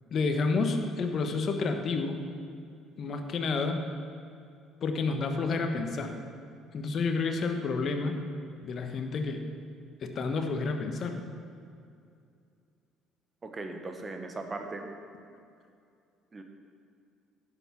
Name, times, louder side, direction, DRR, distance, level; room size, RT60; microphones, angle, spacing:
voice 1, 0.1-2.2 3.0-3.8 4.8-6.2 6.7-8.2 8.6-9.4 10.0-11.2, left 4 dB, 50° left, 5 dB, 1.2 m, -30 dB
voice 2, 13.4-14.9 16.3-16.4, right 3 dB, 30° right, 5 dB, 1.2 m, -38 dB
11.0 x 8.0 x 6.0 m, 2.4 s
hypercardioid pair, 55°, 0 cm